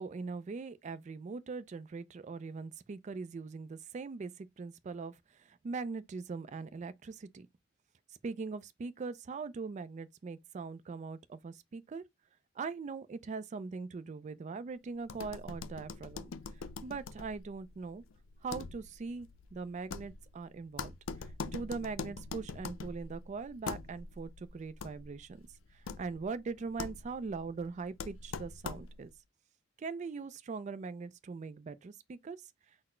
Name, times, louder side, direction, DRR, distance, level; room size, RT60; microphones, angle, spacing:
voice 1, 0.0-7.5 8.2-12.0 12.6-16.3 16.8-18.0 18.4-20.9 21.2-25.4 25.7-29.1 29.8-32.4, right 4 dB, 35° right, 0.3 m, -41 dB
sound 1, 15.0-29.2, left 4 dB, 80° left, 0.4 m, -44 dB
4.0 x 2.1 x 4.3 m
head